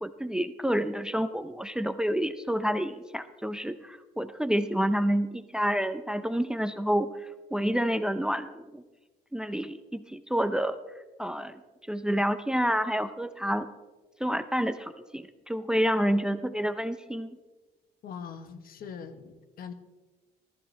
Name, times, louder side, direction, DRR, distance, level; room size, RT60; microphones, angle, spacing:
voice 1, 0.0-7.1 7.5-8.8 9.3-10.8 11.2-11.5 11.9-13.7 14.2-17.3, equal, 5° right, 12 dB, 0.6 m, -28 dB
voice 2, 18.0-19.7, left 6 dB, 60° left, 10 dB, 1.4 m, -42 dB
21.0 x 13.0 x 3.4 m, 1.2 s
cardioid pair, 110°, 17 cm